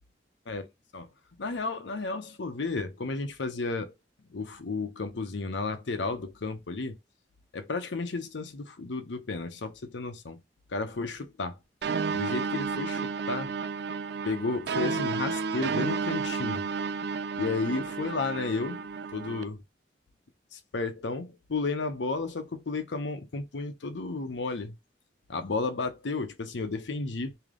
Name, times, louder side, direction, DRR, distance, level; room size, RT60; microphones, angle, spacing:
voice 1, 1.4-3.9 4.3-7.0 7.5-10.4 10.7-11.6 12.1-13.6 14.2-16.6 17.4-18.8 19.1-19.6 20.5-24.7 25.3-27.3, left 3 dB, 85° left, 0.7 m, -33 dB
sound 1, 11.8-19.4, right 5 dB, 65° right, 0.3 m, -32 dB
3.3 x 2.8 x 3.7 m
head